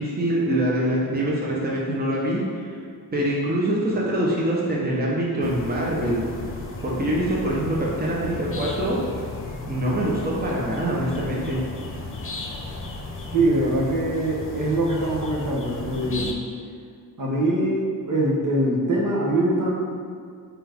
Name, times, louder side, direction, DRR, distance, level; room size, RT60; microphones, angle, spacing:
voice 1, 0.0-2.7 3.1-6.2 6.8-9.0 9.7-11.6, right 1 dB, 25° right, -4 dB, 1.1 m, -24 dB
sound 1, 5.4-16.3, left 3 dB, 35° left, 0.9 m, -35 dB
voice 2, 13.3-16.4 17.2-19.7, right 1 dB, 55° right, -3 dB, 1.3 m, -23 dB
4.7 x 4.4 x 5.2 m, 2.1 s
cardioid pair, 80°, 38 cm